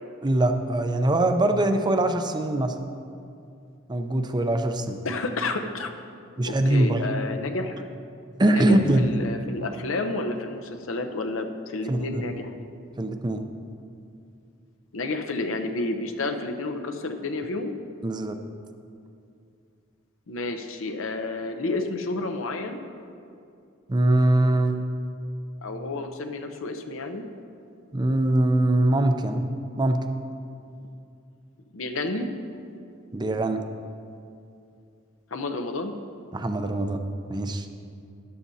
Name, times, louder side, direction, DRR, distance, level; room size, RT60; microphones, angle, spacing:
voice 1, 0.2-2.7 3.9-5.0 6.4-7.0 8.4-9.1 11.9-12.0 13.0-13.4 18.0-18.4 23.9-24.8 27.9-29.4 29.8-30.0 33.1-33.6 36.3-37.0 37.3-37.7, right 1 dB, 20° right, 7 dB, 0.6 m, -22 dB
voice 2, 5.0-5.9 6.5-7.9 8.5-12.5 14.9-17.7 20.3-22.8 25.6-27.2 31.7-32.3 35.3-35.9, left 2 dB, 70° left, 6 dB, 0.8 m, -30 dB
13.0 x 11.0 x 2.8 m, 2.5 s
head